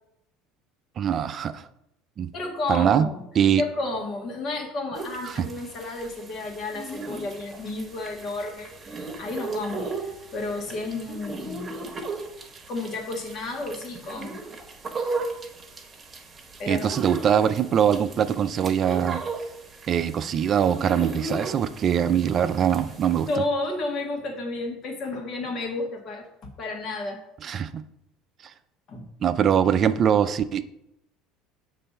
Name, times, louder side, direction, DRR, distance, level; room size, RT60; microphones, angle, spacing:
voice 1, 1.0-1.6 2.2-2.3 2.7-3.1 3.3-3.6 5.3-5.5 16.7-19.2 19.9-23.3 27.4-27.8 29.2-30.6, right 8 dB, 45° right, 12 dB, 0.4 m, -22 dB
voice 2, 2.3-3.2 3.6-11.7 12.7-14.4 16.6-17.0 23.3-26.3 26.6-27.2 28.9-29.0, left 2 dB, 50° left, 1 dB, 1.8 m, -32 dB
sound 1, 4.9-23.4, right 3 dB, 25° right, 1.3 m, -37 dB
6.8 x 3.3 x 5.5 m, 0.82 s
hypercardioid pair, 75°, 0 cm